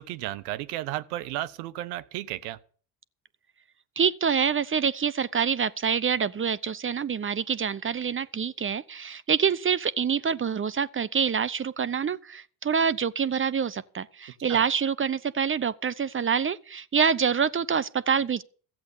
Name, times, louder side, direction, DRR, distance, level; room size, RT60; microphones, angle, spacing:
voice 1, 0.0-2.6 14.5-14.6, right 14 dB, 80° right, 1.0 m, -33 dB
voice 2, 4.0-18.4, right 7 dB, 25° right, 0.7 m, -26 dB
14.5 x 7.9 x 7.0 m
hypercardioid pair, 70°, 46 cm